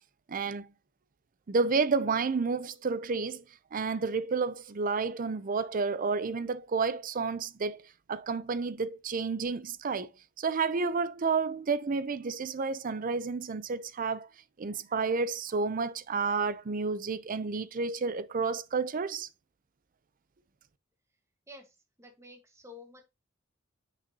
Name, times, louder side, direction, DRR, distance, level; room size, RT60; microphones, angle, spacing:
voice 1, 0.3-0.7 1.5-10.1 10.4-14.3 14.6-19.3, right 4 dB, 45° right, 0.5 m, -30 dB
voice 2, 21.5-23.0, left 2 dB, 15° right, 1.4 m, -51 dB
7.8 x 6.1 x 2.8 m
head